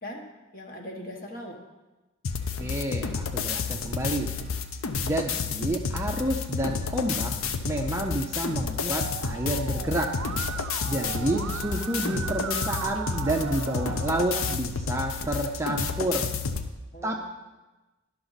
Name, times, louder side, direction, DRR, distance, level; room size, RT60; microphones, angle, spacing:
voice 1, 0.0-1.6 11.0-11.4 16.9-17.2, equal, 45° left, 2 dB, 1.2 m, -40 dB
sound 1, 2.2-16.7, left 5 dB, 80° left, 0.6 m, -31 dB
voice 2, 2.6-4.3 5.0-7.3 7.6-10.1 10.8-16.3 17.0-17.2, right 1 dB, 15° right, 1 dB, 0.4 m, -29 dB
Musical instrument, 9.0-14.6, right 8 dB, 80° right, 0.3 m, -37 dB
11.0 x 6.0 x 4.0 m, 1.1 s
head